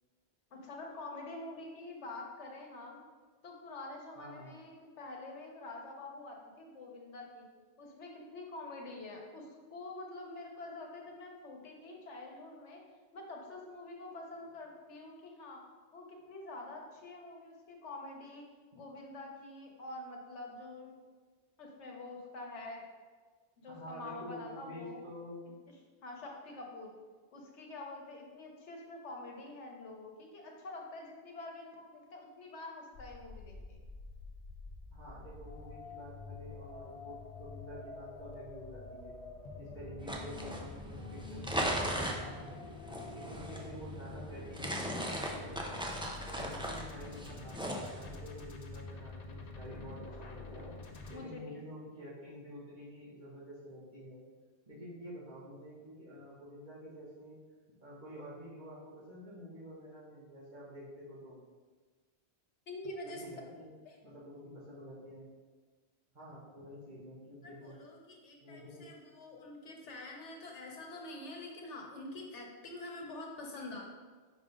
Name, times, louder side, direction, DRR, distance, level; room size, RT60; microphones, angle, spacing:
voice 1, 0.5-3.0 3.4-7.4 7.8-12.8 13.1-15.6 15.9-18.5 18.7-21.0 21.6-22.8 23.6-25.0 26.0-26.9 27.3-33.8 51.1-51.6 62.7-63.2 63.8-64.0 67.4-73.9, left 2 dB, 90° left, 0 dB, 1.3 m, -46 dB
voice 2, 4.2-4.5 23.7-25.6 34.9-39.2 39.6-42.7 43.1-45.9 46.2-50.7 51.1-54.2 54.7-57.4 57.8-61.4 63.0-63.7 64.0-65.3 66.1-67.7 68.4-68.8, equal, 45° right, -11 dB, 2.1 m, -49 dB
sound 1, 32.9-51.2, left 3 dB, 45° left, 0.6 m, -47 dB
sound 2, 40.0-48.2, right 1 dB, 10° right, 0.3 m, -39 dB
5.2 x 5.1 x 3.7 m, 1.4 s
omnidirectional pair, 1.2 m